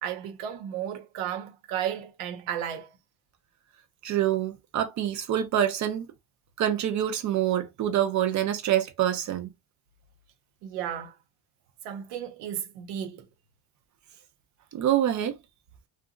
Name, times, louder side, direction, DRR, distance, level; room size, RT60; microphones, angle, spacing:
voice 1, 0.0-3.0 10.6-11.2 11.8-13.2, right 10 dB, 85° right, 1.1 m, -34 dB
voice 2, 4.0-6.1 6.6-9.5 14.7-15.4, right 11 dB, 40° right, 0.5 m, -26 dB
2.8 x 2.4 x 2.5 m
cardioid pair, 175°, 49 cm